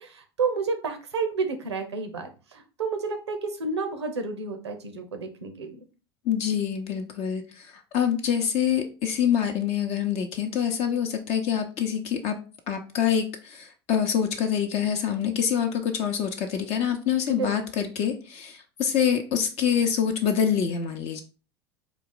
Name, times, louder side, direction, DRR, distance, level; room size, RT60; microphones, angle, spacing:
voice 1, 0.0-5.8 17.3-17.5, right 4 dB, 90° right, 7 dB, 0.7 m, -30 dB
voice 2, 6.3-12.4 12.7-21.2, left 8 dB, 50° left, 5 dB, 0.6 m, -26 dB
4.1 x 2.4 x 3.8 m, 0.34 s
hypercardioid pair, 80°, 14 cm